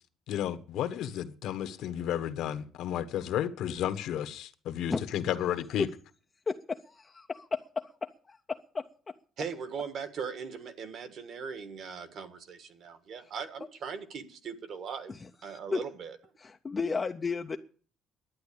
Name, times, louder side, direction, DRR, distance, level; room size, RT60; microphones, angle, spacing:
voice 1, 0.3-5.9, left 10 dB, 65° left, 1.2 m, -32 dB
voice 2, 6.5-8.9 15.1-15.8 16.4-17.6, left 4 dB, 20° left, 0.5 m, -34 dB
voice 3, 9.4-15.1 15.4-16.2, right 6 dB, 45° right, 1.5 m, -39 dB
11.5 x 9.5 x 8.4 m
cardioid pair, 175°, 0 cm